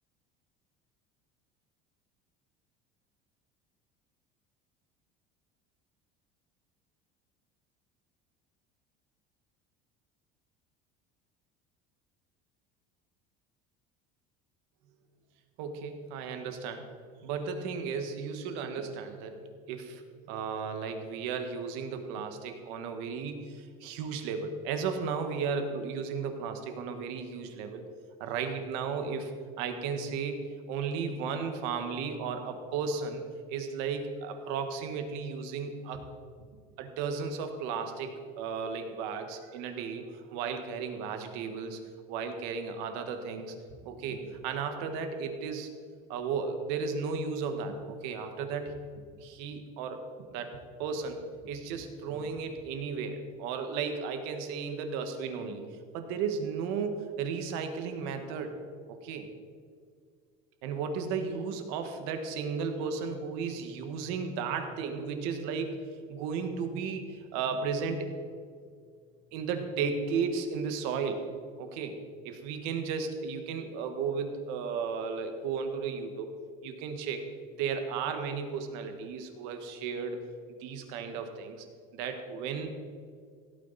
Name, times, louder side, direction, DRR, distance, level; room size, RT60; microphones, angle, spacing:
voice 1, 15.6-20.0 20.3-27.8 28.2-29.3 29.6-33.2 33.5-36.0 36.8-41.8 42.1-43.5 43.8-45.7 46.1-48.8 49.2-50.0 50.3-55.6 55.9-58.6 58.9-59.3 60.6-68.1 69.3-71.2 71.6-72.0 72.2-76.3 76.6-77.2 77.6-80.2 80.6-81.7 81.9-82.7, right 5 dB, 75° right, 7 dB, 1.5 m, -34 dB
16.0 x 9.1 x 4.1 m, 2.1 s
cardioid pair, 160°, 19 cm